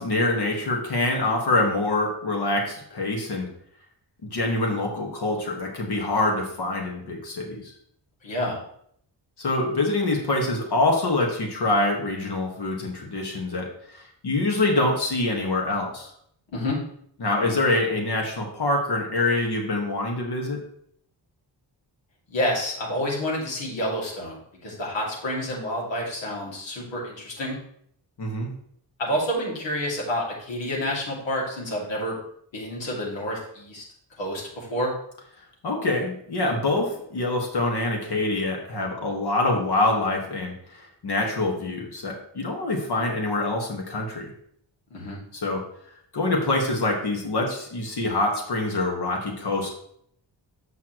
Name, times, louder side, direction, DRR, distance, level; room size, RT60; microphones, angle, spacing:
voice 1, 0.0-3.5 4.2-7.7 9.4-16.1 17.2-20.6 28.2-28.5 35.6-44.3 45.3-45.6 46.1-49.7, left 2 dB, 60° left, 0 dB, 1.8 m, -25 dB
voice 2, 8.2-8.6 16.5-16.8 22.3-24.4 24.6-27.6 29.0-32.2 32.5-33.8 34.2-34.9 44.9-45.2, equal, 90° left, -3 dB, 2.6 m, -28 dB
8.5 x 5.8 x 3.1 m, 0.67 s
cardioid pair, 85°, 44 cm